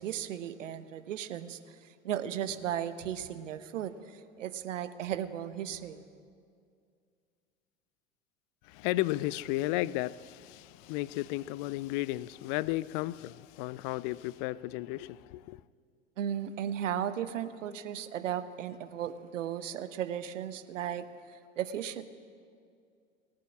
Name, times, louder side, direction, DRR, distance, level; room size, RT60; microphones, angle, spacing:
voice 1, 0.0-6.1 16.2-22.0, right 10 dB, 70° right, 1.0 m, -36 dB
voice 2, 8.6-15.6, left 17 dB, 40° left, 0.4 m, -34 dB
19.5 x 7.7 x 9.7 m
figure-of-eight pair, 85°, 39 cm